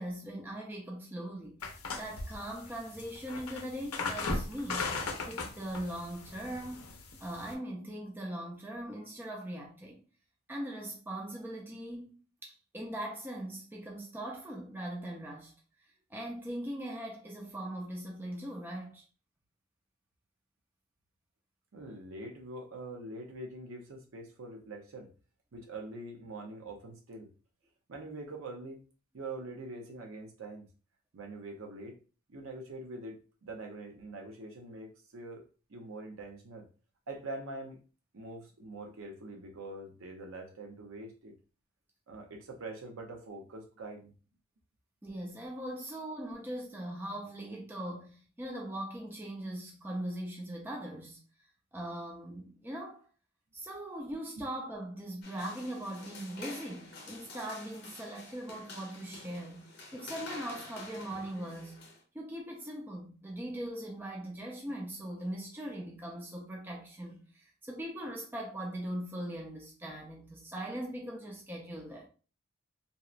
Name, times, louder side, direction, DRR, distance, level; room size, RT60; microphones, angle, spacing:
voice 1, 0.0-1.6 2.0-5.0 5.2-10.0 10.5-12.1 12.4-15.5 16.1-19.0 45.0-51.2 51.7-53.0 53.5-59.6 59.9-61.8 62.1-72.1, right 1 dB, 10° right, 0.3 m, -40 dB
sound 1, 1.6-7.5, left 3 dB, 90° left, 0.5 m, -38 dB
voice 2, 21.7-25.1 25.5-27.3 27.9-28.8 29.1-30.7 31.1-32.0 32.3-35.4 35.7-36.7 37.1-37.8 38.1-41.4 42.1-44.1, right 2 dB, 70° right, 0.6 m, -44 dB
sound 2, 55.2-62.0, left 3 dB, 50° left, 0.6 m, -48 dB
2.8 x 2.0 x 2.4 m
head